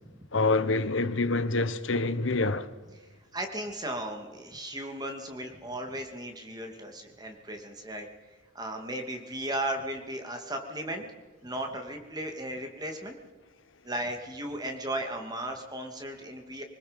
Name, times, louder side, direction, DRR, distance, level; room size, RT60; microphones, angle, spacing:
voice 1, 0.3-2.7, left 3 dB, 70° left, 1.2 m, -26 dB
voice 2, 3.3-8.1 8.5-11.0 11.4-13.1 13.8-16.6, right 1 dB, 20° right, 2.6 m, -36 dB
26.0 x 19.5 x 5.3 m
head